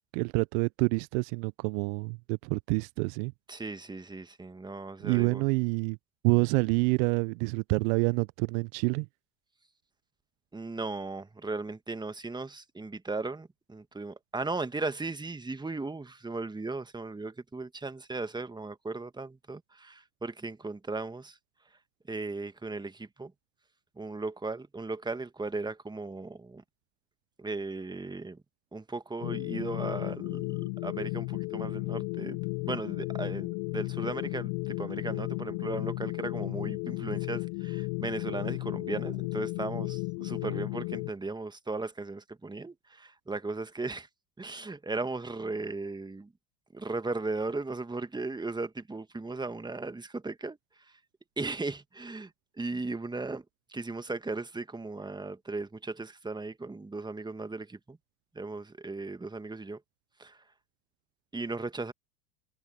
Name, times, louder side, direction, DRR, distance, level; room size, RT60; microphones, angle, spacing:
voice 1, 0.1-3.3 5.0-6.0 6.2-9.1, right 30 dB, 55° right, 1.0 m, -27 dB
voice 2, 3.5-5.4 10.5-21.4 22.1-23.3 24.0-26.6 27.4-28.4 28.7-44.1 44.4-46.3 46.7-51.0 51.4-53.4 53.7-58.0 58.3-59.8 60.2-60.4 61.3-61.9, right 3 dB, 10° right, 1.9 m, -37 dB
sound 1, 29.2-41.1, left 33 dB, 55° left, 1.2 m, -34 dB
hypercardioid pair, 80°, 49 cm